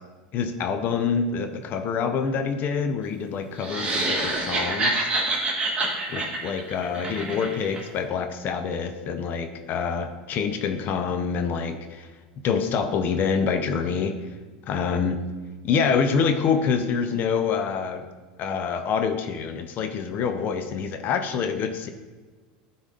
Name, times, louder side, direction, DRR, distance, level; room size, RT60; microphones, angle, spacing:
voice 1, 0.3-5.1 6.1-12.1 12.4-14.3 14.7-15.2 15.6-18.1 18.4-21.9, left 6 dB, 40° left, 7 dB, 0.6 m, -26 dB
sound 1, 3.6-7.8, right 2 dB, 25° right, 2.0 m, -27 dB
10.0 x 4.0 x 3.8 m, 1.3 s
supercardioid pair, 115°, 5 cm